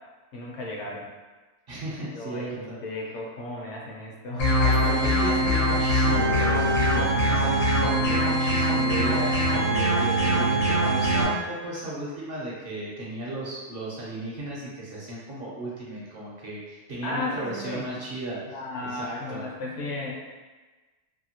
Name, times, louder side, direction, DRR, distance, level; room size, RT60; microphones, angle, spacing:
voice 1, 0.3-1.1 2.1-4.5 17.0-17.8 18.5-20.2, left 2 dB, 70° left, -2 dB, 0.9 m, -34 dB
voice 2, 1.7-2.8 4.5-18.4 18.8-19.4, right 2 dB, 55° right, -6 dB, 0.8 m, -35 dB
sound 1, 4.4-11.2, equal, 90° left, 1.2 m, -22 dB
2.7 x 2.5 x 2.8 m, 1.3 s
omnidirectional pair, 1.3 m